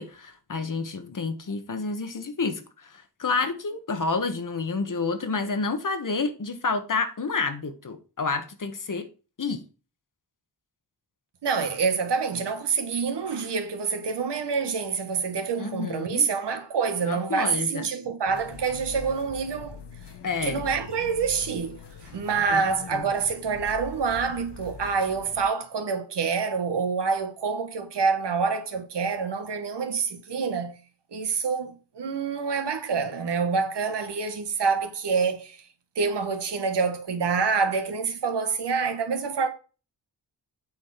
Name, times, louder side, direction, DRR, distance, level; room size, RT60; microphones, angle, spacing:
voice 1, 0.0-9.1 9.4-9.6 15.6-16.3 17.1-17.9 20.2-20.6 22.5-22.6 22.9-23.1, left 4 dB, 50° left, 1.4 m, -29 dB
voice 2, 11.4-19.8 20.4-30.8 31.1-35.6 36.0-39.5, right 5 dB, 80° right, 1.4 m, -27 dB
sound 1, 18.3-25.4, left 6 dB, 80° left, 1.2 m, -43 dB
8.6 x 4.2 x 5.8 m
cardioid pair, 75°, 41 cm